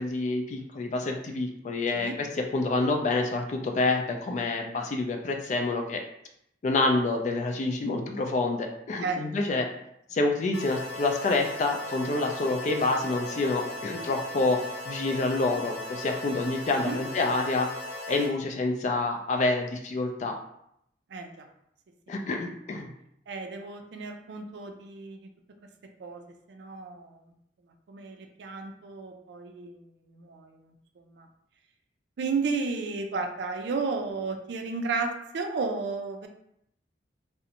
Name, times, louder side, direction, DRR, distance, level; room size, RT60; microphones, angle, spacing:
voice 1, 0.0-2.3 2.5-6.0 6.6-9.7 10.1-17.7 18.1-20.4 22.1-22.9, left 2 dB, 40° left, 3 dB, 0.3 m, -27 dB
sound 1, 10.5-18.3, left 1 dB, 85° left, 0.7 m, -38 dB
voice 2, 21.1-21.5 22.1-22.2 23.3-25.3 26.0-26.2 26.5-27.2 27.9-30.6 31.0-31.3 32.2-36.3, right 4 dB, 70° right, 4 dB, 0.4 m, -33 dB
2.5 x 2.1 x 2.8 m, 0.76 s
head